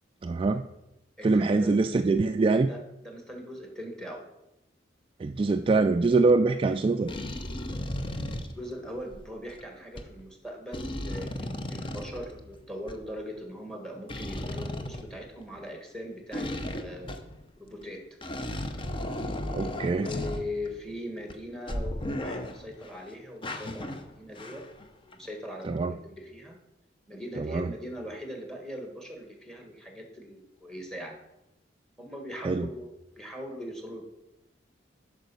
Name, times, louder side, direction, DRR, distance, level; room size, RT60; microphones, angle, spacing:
voice 1, 0.2-0.6 1.2-2.7 5.2-7.1 19.5-20.1 25.7-25.9 27.4-27.7 32.4-32.7, right 3 dB, 30° right, 7 dB, 0.3 m, -24 dB
voice 2, 1.2-1.8 2.7-4.2 8.5-17.1 17.6-18.0 19.6-24.6 25.0-26.6 27.1-31.2 32.0-34.0, equal, 5° left, 2 dB, 1.6 m, -40 dB
sound 1, 6.0-6.3 7.1-9.6 10.0-10.1 10.7-13.0 14.1-15.7 16.3-17.4 17.8-17.9 18.2-20.9 21.3-21.4 21.7-23.0 23.4-24.9 25.1-25.3, left 1 dB, 30° left, 0.7 m, -35 dB
9.0 x 6.1 x 5.4 m, 0.94 s
head